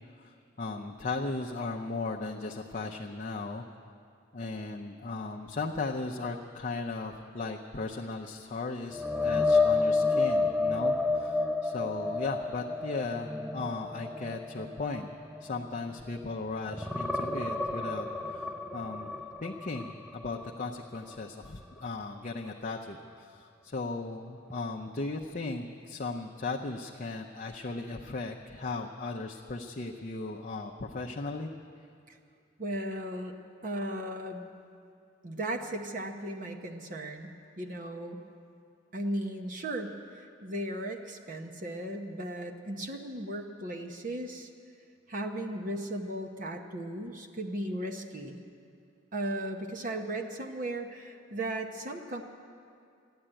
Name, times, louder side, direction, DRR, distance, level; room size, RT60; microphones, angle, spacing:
voice 1, 0.2-3.6 4.3-15.1 15.4-19.1 19.4-31.5, left 3 dB, 40° left, 0 dB, 0.6 m, -37 dB
sound 1, 8.9-16.3 16.7-20.5 20.9-21.1 24.5-24.6, left 3 dB, ahead, 0.4 m, -30 dB
voice 2, 32.6-33.3 33.6-34.5 35.2-38.2 38.9-44.5 45.1-48.4 49.1-52.2, right 1 dB, 40° right, 3 dB, 0.8 m, -36 dB
14.0 x 11.0 x 8.8 m, 2.4 s
head